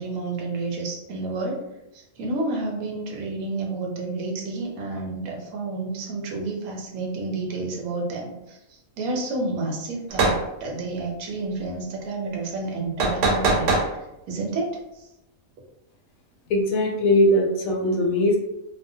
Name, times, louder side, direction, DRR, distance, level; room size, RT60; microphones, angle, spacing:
voice 1, 0.0-1.6 1.9-8.6 9.0-13.7 14.3-14.8, right 3 dB, 85° right, 0 dB, 1.2 m, -30 dB
sound 1, 10.1-10.4 13.0-13.9, right 3 dB, 70° right, 0.9 m, -21 dB
voice 2, 16.5-18.4, left 1 dB, 75° left, 1 dB, 1.0 m, -20 dB
2.7 x 2.1 x 2.6 m, 0.89 s
omnidirectional pair, 1.5 m